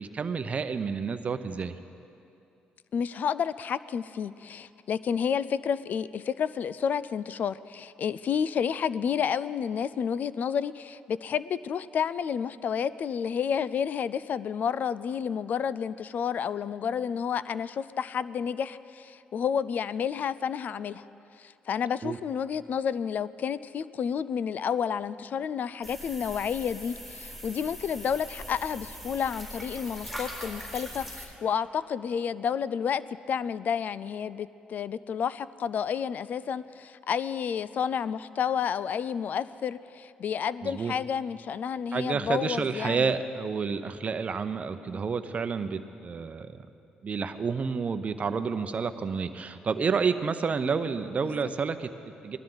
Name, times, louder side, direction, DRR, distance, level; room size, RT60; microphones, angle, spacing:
voice 1, 0.0-1.7 22.0-22.2 40.6-40.9 41.9-46.6 47.0-52.4, right 5 dB, 45° right, 10 dB, 0.7 m, -30 dB
voice 2, 2.9-21.1 21.4-33.0 33.3-43.1 51.2-51.5, left 7 dB, 60° left, 17 dB, 0.4 m, -30 dB
sound 1, 25.8-31.3, equal, 10° left, 3.8 m, -41 dB
19.5 x 12.5 x 3.9 m, 2.6 s
supercardioid pair, 70°, 3 cm